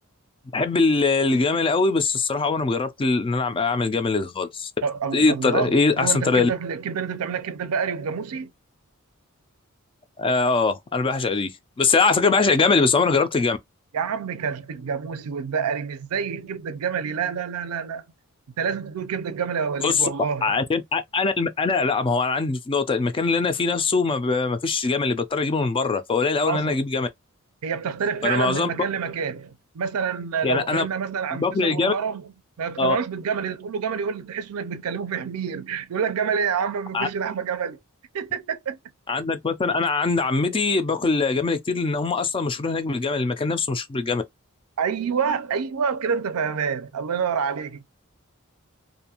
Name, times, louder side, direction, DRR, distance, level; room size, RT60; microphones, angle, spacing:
voice 1, 0.5-4.7 5.1-6.5 10.2-11.5 11.8-13.6 19.8-19.9 20.4-27.1 28.2-28.7 30.4-30.9 31.3-31.9 32.8-33.0 36.9-37.1 39.1-44.2, left 4 dB, 25° left, 0.4 m, -22 dB
voice 2, 4.8-8.5 13.9-18.0 18.6-20.6 26.5-26.8 27.6-32.3 32.6-37.8 38.1-38.8 44.8-47.8, right 6 dB, 80° right, 0.4 m, -27 dB
2.6 x 2.3 x 2.8 m
head